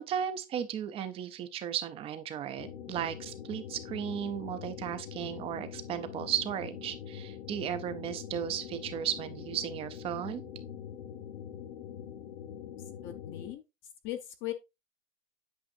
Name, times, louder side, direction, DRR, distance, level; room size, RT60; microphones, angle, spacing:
voice 1, 0.0-10.4, right 9 dB, 15° right, 0.3 m, -35 dB
sound 1, 2.6-13.5, left 9 dB, 45° left, 1.0 m, -44 dB
voice 2, 13.0-13.6 14.0-14.5, left 13 dB, 30° left, 0.6 m, -38 dB
8.7 x 5.4 x 2.5 m
supercardioid pair, 150°, 39 cm